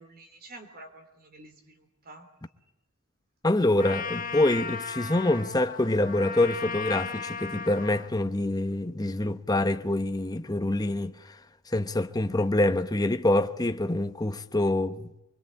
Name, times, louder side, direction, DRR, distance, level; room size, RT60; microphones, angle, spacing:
voice 1, 0.0-2.3, right 2 dB, 45° right, 3.1 m, -49 dB
voice 2, 3.4-11.4 11.7-15.1, left 1 dB, 20° left, 0.9 m, -26 dB
Trumpet, 3.8-8.1, left 5 dB, 40° left, 1.4 m, -36 dB
25.0 x 22.5 x 8.7 m
head